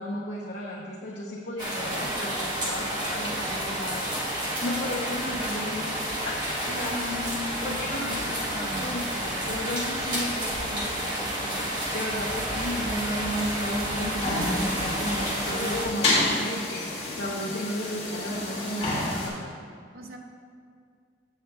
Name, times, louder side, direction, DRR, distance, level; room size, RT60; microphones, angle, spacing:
voice 1, 0.0-7.2 7.6-19.6, left 1 dB, 65° left, -4 dB, 0.9 m, -34 dB
sound 1, 1.6-15.9, right 1 dB, 25° right, 1.3 m, -30 dB
voice 2, 6.7-9.0 19.9-20.2, left 1 dB, 55° right, 2 dB, 0.8 m, -38 dB
sound 2, 14.2-19.3, left 1 dB, 35° left, 2.1 m, -29 dB
14.5 x 6.5 x 2.3 m, 2.2 s
head